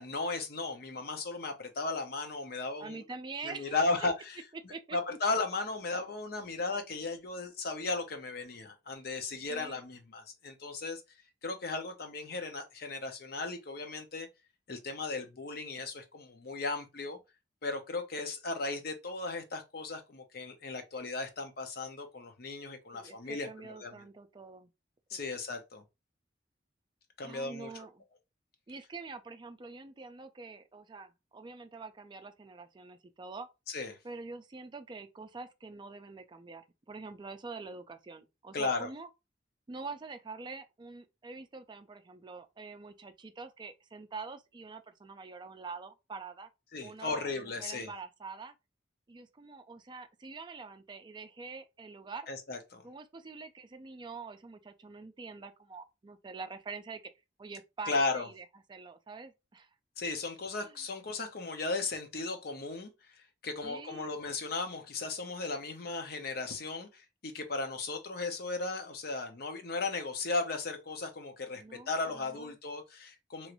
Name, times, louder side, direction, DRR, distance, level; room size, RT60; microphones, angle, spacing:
voice 1, 0.0-3.0 3.4-11.0 11.4-14.3 14.7-17.2 17.6-24.0 25.1-25.8 27.2-27.7 33.7-34.0 38.5-38.9 46.7-47.9 52.3-52.8 57.9-58.3 60.0-62.9 63.4-73.5, left 3 dB, 60° left, 0.7 m, -36 dB
voice 2, 2.8-3.9 4.7-5.2 9.5-9.8 22.9-24.7 25.1-25.2 27.2-28.0 28.7-33.5 34.0-39.1 39.7-46.5 46.8-48.5 49.1-52.3 52.8-57.0 57.4-59.7 60.6-60.8 63.6-64.1 71.6-72.5, right 4 dB, 25° right, 0.4 m, -45 dB
3.0 x 2.5 x 2.9 m
head